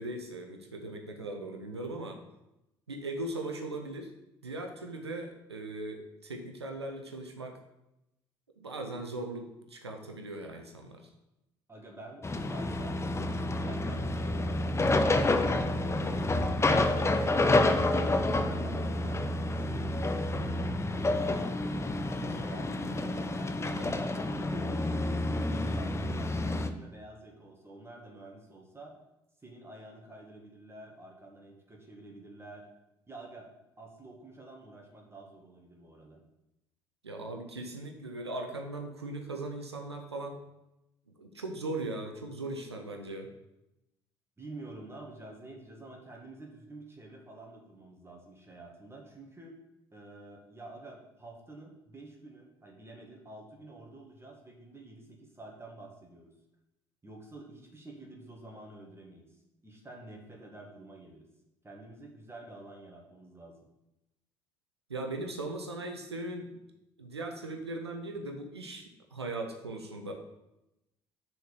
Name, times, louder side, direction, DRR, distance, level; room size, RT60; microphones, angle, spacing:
voice 1, 0.0-2.2 2.9-4.1 4.4-7.6 8.6-11.1 23.6-24.0 37.0-40.4 41.2-43.3 64.9-66.6 67.0-70.1, right 2 dB, 85° right, 4 dB, 0.7 m, -39 dB
voice 2, 11.7-13.0 13.3-17.5 17.9-20.0 20.4-23.5 24.0-25.1 25.5-28.9 29.4-32.7 33.1-36.2 44.4-49.6 49.9-56.3 57.0-59.3 59.6-61.3 61.6-63.6, right 2 dB, 20° right, 0 dB, 1.8 m, -49 dB
sound 1, 12.2-26.7, left 2 dB, 20° left, 0.7 m, -29 dB
6.4 x 4.4 x 6.6 m, 0.91 s
figure-of-eight pair, 50°, 13 cm